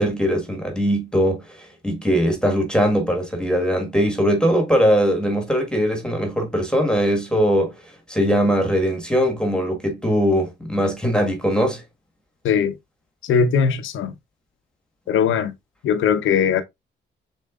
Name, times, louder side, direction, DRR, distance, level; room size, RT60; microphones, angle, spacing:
voice 1, 0.0-11.8, equal, 5° left, 1.4 m, -21 dB
voice 2, 12.4-12.8 13.3-14.1 15.1-15.5 15.8-16.6, left 7 dB, 80° left, 0.7 m, -19 dB
6.4 x 3.2 x 2.3 m
cardioid pair, 75°, 20 cm